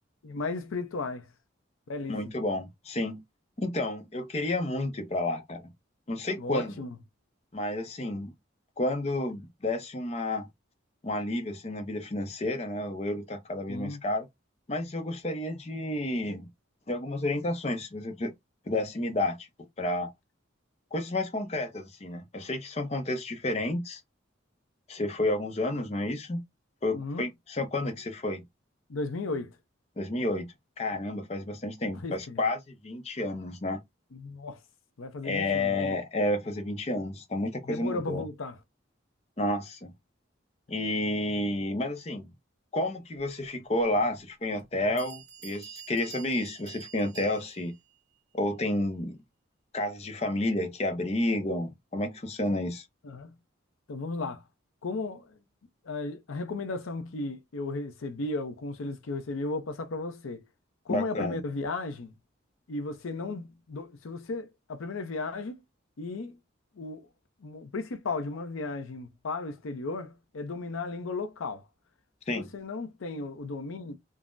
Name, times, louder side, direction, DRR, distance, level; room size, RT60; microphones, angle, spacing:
voice 1, 0.2-1.3 1.9-2.2 6.4-7.0 13.7-14.0 26.9-27.3 28.9-29.6 31.9-32.4 34.1-34.6 35.0-36.0 37.6-38.6 53.0-53.4 53.9-54.4 54.8-55.4 55.8-60.4 60.9-62.1 62.7-65.6 66.0-66.4 66.8-67.1 67.4-71.6 72.3-73.9, left 3 dB, 90° left, 0.6 m, -35 dB
voice 2, 2.1-3.2 3.6-5.6 6.1-6.7 7.5-8.3 8.8-10.5 11.0-14.3 14.7-16.5 16.9-18.3 18.7-19.4 19.8-20.1 20.9-24.0 24.9-26.4 26.8-28.4 30.0-30.5 30.8-33.8 35.2-38.2 39.4-39.9 40.7-42.3 42.7-47.7 48.3-49.2 49.7-52.9 60.9-61.4 72.3-72.5, left 1 dB, 30° left, 0.5 m, -30 dB
Bell, 44.6-44.7 45.0-47.8, right 8 dB, 55° right, 1.4 m, -47 dB
3.5 x 2.0 x 2.5 m
head